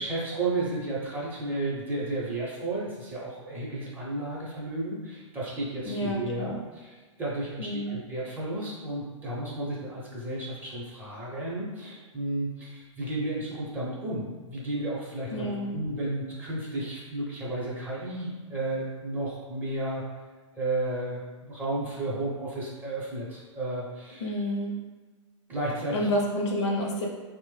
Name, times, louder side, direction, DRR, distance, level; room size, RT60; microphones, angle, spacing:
voice 1, 0.0-20.0 20.6-24.3 25.5-26.1, right 2 dB, 10° right, -6 dB, 0.7 m, -33 dB
voice 2, 5.9-6.5 7.6-8.0 15.3-15.8 24.2-24.8 25.9-27.1, equal, 60° left, 0 dB, 0.7 m, -29 dB
3.0 x 2.1 x 3.1 m, 1.4 s
hypercardioid pair, 120°, 17 cm